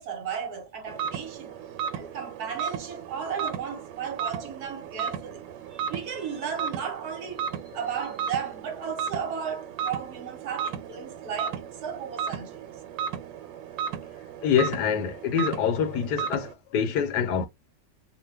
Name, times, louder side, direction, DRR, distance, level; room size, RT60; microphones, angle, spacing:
voice 1, 0.0-1.5 1.9-5.4 5.7-12.7, right 7 dB, 65° right, 1.1 m, -35 dB
sound 1, 0.9-16.5, right 8 dB, 90° right, 1.3 m, -35 dB
voice 2, 14.4-17.5, left 7 dB, 75° left, 1.2 m, -25 dB
2.8 x 2.1 x 3.2 m
omnidirectional pair, 1.9 m